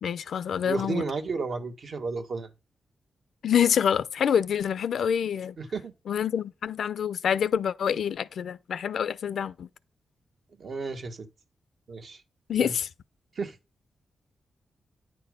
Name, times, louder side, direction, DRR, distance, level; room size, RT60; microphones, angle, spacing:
voice 1, 0.0-1.0 3.4-5.6 6.1-9.7 12.5-12.9, left 8 dB, 80° left, 0.6 m, -26 dB
voice 2, 0.6-2.5 5.6-5.9 10.5-11.3 11.9-12.2 12.6-12.8 13.3-13.6, right 4 dB, 65° right, 1.6 m, -33 dB
9.6 x 4.4 x 5.2 m
cardioid pair, 70°, 0 cm